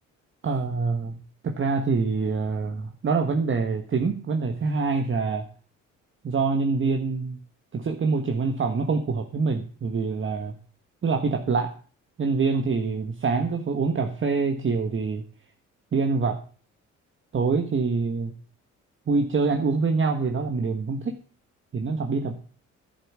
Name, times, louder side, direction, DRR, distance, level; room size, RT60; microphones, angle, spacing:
voice 1, 0.4-5.4 6.2-7.4 7.7-10.6 11.0-11.7 12.2-15.2 15.9-16.4 17.3-18.3 19.1-21.1 21.7-22.4, right 4 dB, 40° right, 4 dB, 1.4 m, -25 dB
11.0 x 8.2 x 6.2 m, 0.41 s
cardioid pair, 90°, 30 cm